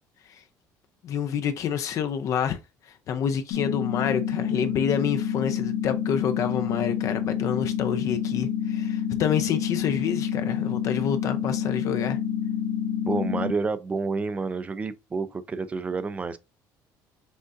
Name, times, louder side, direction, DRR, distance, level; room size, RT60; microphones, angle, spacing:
voice 1, 1.0-2.6 2.9-12.2, left 8 dB, 45° left, 0.5 m, -28 dB
sound 1, 3.5-13.5, left 8 dB, 85° left, 0.9 m, -28 dB
voice 2, 13.0-16.4, right 4 dB, 20° right, 0.4 m, -29 dB
6.2 x 2.4 x 2.5 m
cardioid pair, 145°, 7 cm